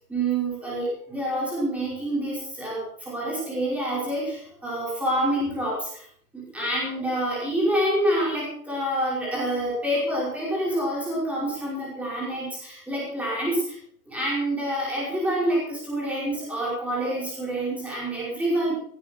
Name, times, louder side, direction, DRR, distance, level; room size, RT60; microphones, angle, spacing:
voice 1, 0.1-6.0 6.3-13.8 14.1-18.8, right 1 dB, 5° right, -6 dB, 5.2 m, -27 dB
18.5 x 16.0 x 4.6 m, 0.63 s
figure-of-eight pair, 125°, 47 cm